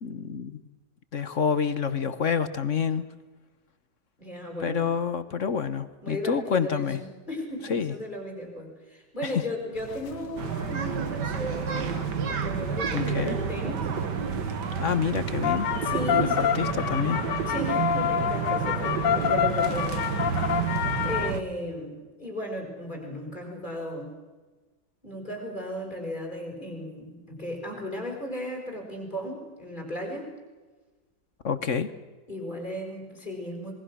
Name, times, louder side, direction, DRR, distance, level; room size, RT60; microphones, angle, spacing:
voice 1, 0.0-0.6 1.1-3.0 4.6-7.0 7.7-7.9 9.2-9.4 12.9-13.4 14.8-15.7 16.2-17.2 31.4-31.9, left 6 dB, 50° left, 12 dB, 1.3 m, -28 dB
voice 2, 4.2-5.0 6.0-13.9 15.8-16.7 17.4-20.1 21.0-24.1 25.0-30.3 32.3-33.8, equal, 25° left, 1 dB, 5.8 m, -35 dB
sound 1, 9.8-21.3, left 9 dB, 80° left, 1.8 m, -30 dB
sound 2, 10.4-21.4, right 7 dB, 70° right, 2.1 m, -30 dB
27.0 x 22.0 x 6.3 m, 1.3 s
omnidirectional pair, 1.9 m